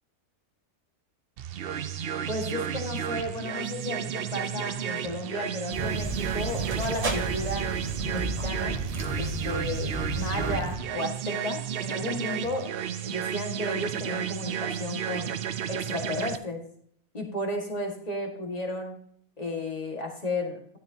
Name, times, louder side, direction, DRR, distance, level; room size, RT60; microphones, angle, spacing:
sound 1, 1.4-16.4, right 9 dB, 60° right, 0.6 m, -33 dB
voice 1, 2.3-7.7 8.1-8.8 9.2-15.3 15.7-16.6 17.1-19.0 19.4-20.8, left 1 dB, 30° left, 2 dB, 1.9 m, -33 dB
sound 2, 5.7-10.8, right 2 dB, 30° right, 1.0 m, -32 dB
13.0 x 9.6 x 2.8 m, 0.65 s
omnidirectional pair, 1.5 m